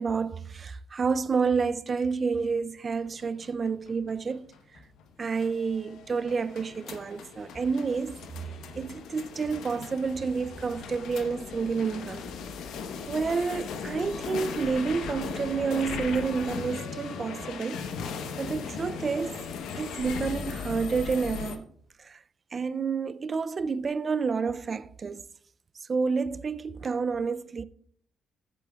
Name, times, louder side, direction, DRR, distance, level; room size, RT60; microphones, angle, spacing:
voice 1, 0.0-4.4 5.2-8.5 8.8-12.3 13.1-17.8 18.4-19.5 19.8-21.7 22.0-22.2 22.5-25.2 25.9-27.6, right 5 dB, 40° right, 0.4 m, -29 dB
sound 1, 3.0-21.6, left 6 dB, 80° left, 1.0 m, -38 dB
14.5 x 8.4 x 2.3 m
cardioid pair, 90°, 0 cm